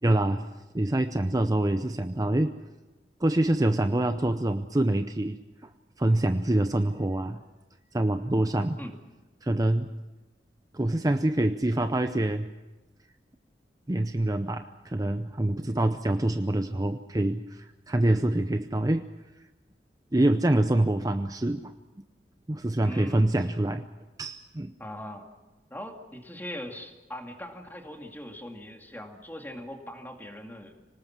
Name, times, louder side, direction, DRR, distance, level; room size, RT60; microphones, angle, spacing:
voice 1, 0.0-0.4 0.7-2.6 3.2-5.7 6.0-7.4 7.9-8.8 9.4-9.9 10.7-12.5 13.9-19.1 20.1-21.7 22.5-23.8 24.2-24.7, right 1 dB, 20° right, 9 dB, 0.6 m, -25 dB
voice 2, 22.8-23.3 24.8-25.3 25.7-30.7, left 1 dB, 10° left, 3 dB, 2.4 m, -40 dB
25.5 x 19.0 x 7.4 m, 1.1 s
head